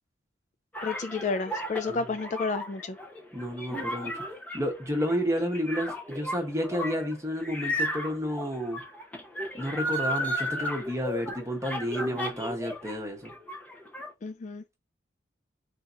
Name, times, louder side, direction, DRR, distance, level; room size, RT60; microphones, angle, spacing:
sound 1, 0.7-12.9 13.2-14.1, equal, 10° left, 0.8 m, -34 dB
voice 1, 0.8-3.0 14.2-14.6, left 4 dB, 40° left, 0.3 m, -31 dB
voice 2, 3.3-4.1 4.5-8.8 9.5-13.3, equal, 15° right, 1.1 m, -31 dB
3.5 x 2.8 x 3.8 m
head